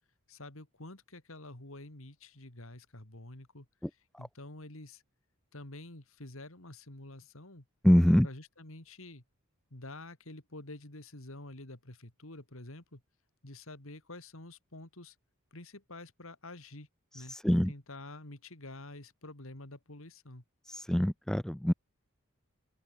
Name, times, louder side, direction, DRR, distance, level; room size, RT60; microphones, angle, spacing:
voice 1, 0.3-5.0 5.5-7.6 8.2-9.2 9.7-13.0 13.4-15.1 15.5-16.9 17.1-20.4, left 2 dB, 65° left, 3.1 m, -48 dB
voice 2, 7.8-8.3 17.4-17.7 20.7-21.7, equal, ahead, 0.3 m, -24 dB
open air
head